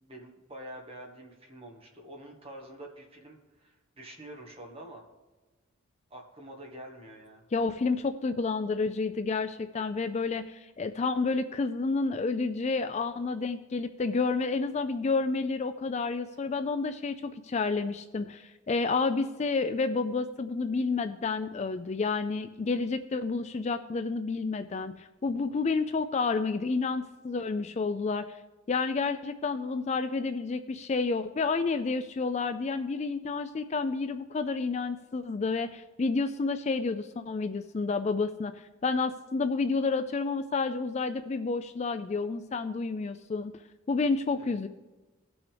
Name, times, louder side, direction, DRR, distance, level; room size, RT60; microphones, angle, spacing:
voice 1, 0.0-5.0 6.1-7.5 44.3-44.5, right 1 dB, 25° right, 0 dB, 1.6 m, -47 dB
voice 2, 7.5-28.4 28.7-43.5 43.9-44.7, left 4 dB, 30° left, 10 dB, 0.3 m, -30 dB
18.0 x 6.1 x 3.4 m, 1.2 s
head